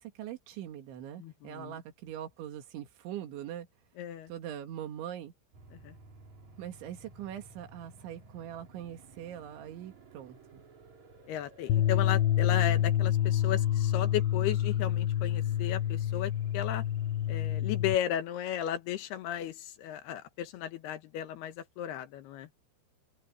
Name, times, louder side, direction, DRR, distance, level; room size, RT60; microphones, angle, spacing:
voice 1, 0.0-3.7 4.3-5.3 6.6-10.6, right 11 dB, 75° right, 4.5 m, -42 dB
voice 2, 1.2-1.8 4.0-4.3 5.7-6.0 11.3-16.8 17.3-22.5, left 11 dB, 70° left, 2.9 m, -35 dB
sound 1, 5.5-17.4, right 3 dB, 40° right, 4.7 m, -56 dB
sound 2, 11.7-18.0, left 11 dB, 85° left, 3.2 m, -28 dB
open air
omnidirectional pair, 5.6 m